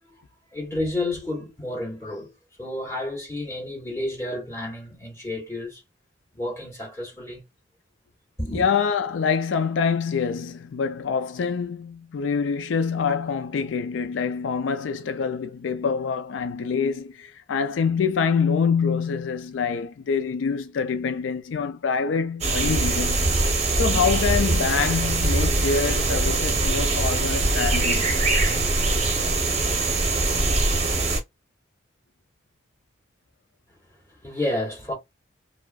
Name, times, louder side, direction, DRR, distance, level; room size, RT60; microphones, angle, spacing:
voice 1, 0.5-2.3 2.6-5.8 6.3-7.4 8.4-8.7 34.2-34.9, left 1 dB, 15° left, 2.1 m, -30 dB
voice 2, 8.5-23.3 23.8-28.1, left 6 dB, 90° left, 0.4 m, -25 dB
sound 1, 22.4-31.2, right 2 dB, 35° right, 0.7 m, -22 dB
4.6 x 2.1 x 2.3 m
head